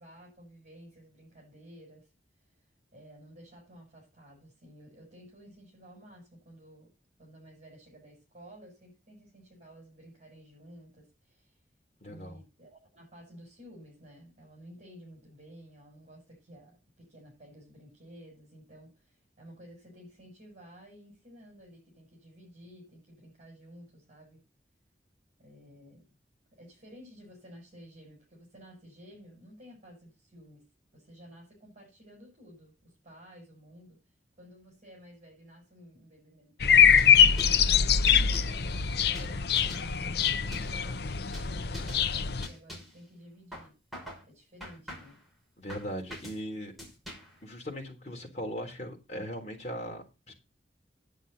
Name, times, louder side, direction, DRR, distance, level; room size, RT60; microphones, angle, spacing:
voice 1, 0.0-2.1 2.9-6.9 7.2-11.6 12.0-24.4 25.4-26.1 26.5-30.7 30.9-34.0 34.4-36.8 37.4-40.0 40.4-43.7 44.2-45.2, equal, 40° right, 7.5 m, -53 dB
voice 2, 12.0-12.4 45.6-46.7 47.4-50.3, equal, 40° left, 3.7 m, -39 dB
sound 1, 36.6-42.5, left 7 dB, 65° left, 0.7 m, -23 dB
sound 2, 37.0-37.7 38.1-38.6 39.2-39.9 40.2-40.8 41.3-41.5 41.7-42.0 42.4-43.0 43.5-44.2 44.6-45.2 45.7-46.4 46.8-47.4, equal, ahead, 6.1 m, -44 dB
10.5 x 10.0 x 4.2 m
head